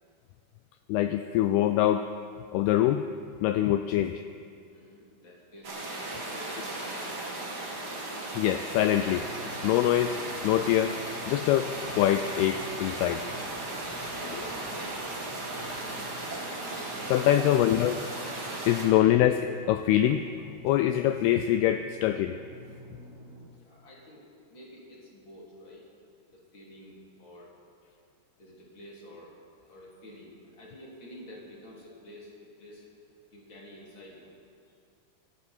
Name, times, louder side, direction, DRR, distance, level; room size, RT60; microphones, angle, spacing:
voice 1, 0.9-2.1 2.5-3.0 3.4-4.2 8.4-9.3 9.6-10.2 10.4-11.0 11.3-13.2 14.2-14.4 17.1-18.0 18.7-20.2 20.6-22.4, left 12 dB, 85° left, 9 dB, 2.2 m, -24 dB
voice 2, 4.7-7.4 13.9-14.7 23.5-25.8 26.3-27.5 28.4-29.3 29.6-32.8 33.3-34.3 34.7-34.8, equal, 30° left, -4 dB, 3.3 m, -50 dB
sound 1, 5.6-18.9, right 2 dB, 35° right, 1.8 m, -36 dB
sound 2, 8.8-23.5, right 1 dB, 75° right, 1.3 m, -49 dB
24.5 x 13.0 x 4.4 m, 2.3 s
omnidirectional pair, 5.1 m